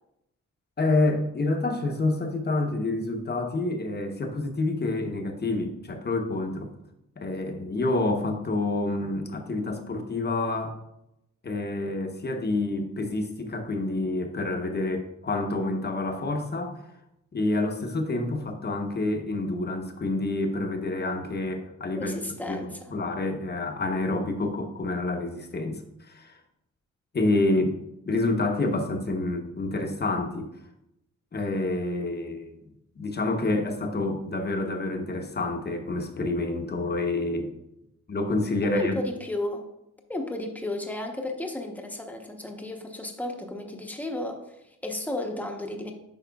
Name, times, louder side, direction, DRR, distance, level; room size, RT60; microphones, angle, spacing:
voice 1, 0.8-6.7 7.2-10.8 11.4-16.8 17.3-22.1 22.5-22.6 22.9-25.8 26.1-26.3 27.1-27.8 28.1-30.5 31.3-32.6 33.0-37.5 38.1-39.0, left 2 dB, 35° left, 4 dB, 0.9 m, -28 dB
voice 2, 21.9-22.9 38.6-39.7 40.1-45.9, left 1 dB, 5° left, 2 dB, 0.8 m, -33 dB
9.1 x 5.6 x 2.3 m, 0.85 s
wide cardioid pair, 115°, 30 cm